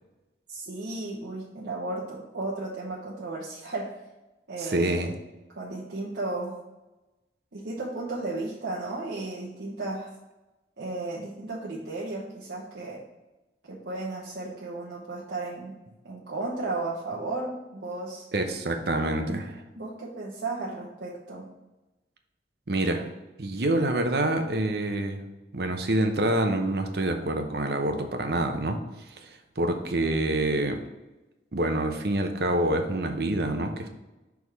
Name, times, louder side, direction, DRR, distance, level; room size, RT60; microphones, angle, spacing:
voice 1, 0.5-3.9 4.5-5.2 5.5-6.6 7.5-10.1 10.8-13.0 13.7-15.7 16.0-18.3 19.7-21.5, right 2 dB, 75° right, -5 dB, 1.1 m, -34 dB
voice 2, 4.6-5.1 18.3-19.6 22.7-23.1 23.4-25.2 25.5-28.8 29.2-29.3 29.6-30.8 31.5-33.9, right 1 dB, 60° right, 5 dB, 0.8 m, -26 dB
6.3 x 3.6 x 4.7 m, 1.1 s
head